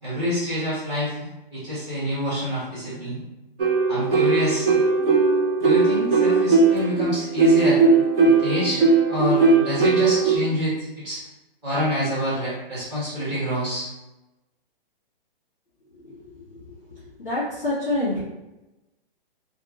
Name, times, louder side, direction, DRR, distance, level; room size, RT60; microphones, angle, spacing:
voice 1, 0.0-3.2 3.9-4.7 5.6-7.8 8.2-8.8 9.1-11.2 11.6-13.9, equal, 25° right, -10 dB, 1.4 m, -27 dB
sound 1, 3.6-10.4, right 4 dB, 70° right, 0.8 m, -19 dB
voice 2, 15.9-18.2, left 2 dB, ahead, -12 dB, 0.4 m, -29 dB
3.0 x 2.4 x 2.4 m, 1.0 s
hypercardioid pair, 175°, 29 cm